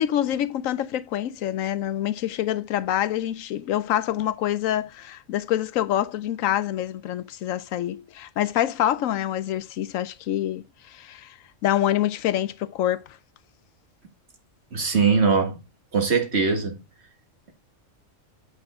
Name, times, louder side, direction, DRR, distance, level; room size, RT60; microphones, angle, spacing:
voice 1, 0.0-11.3 11.6-13.0, left 12 dB, 80° left, 1.0 m, -26 dB
voice 2, 14.7-15.6 15.9-16.7, right 5 dB, 55° right, 2.0 m, -21 dB
8.1 x 5.5 x 3.5 m
omnidirectional pair, 1.4 m